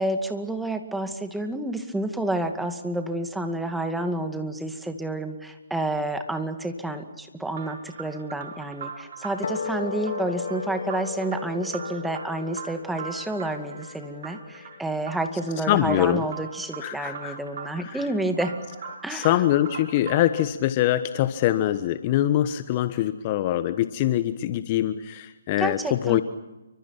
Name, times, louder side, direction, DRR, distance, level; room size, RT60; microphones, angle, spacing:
voice 1, 0.0-18.6 19.0-19.3 25.6-26.2, right 1 dB, 5° right, 6 dB, 2.2 m, -29 dB
sound 1, 7.5-20.5, right 6 dB, 50° right, 4.8 m, -41 dB
sound 2, 9.4-15.9, left 6 dB, 60° left, 2.3 m, -36 dB
voice 2, 15.7-16.2 16.8-17.4 17.8-18.1 19.1-26.2, left 13 dB, 30° left, 12 dB, 1.1 m, -24 dB
29.5 x 25.0 x 6.0 m, 1.1 s
figure-of-eight pair, 140°, 0 cm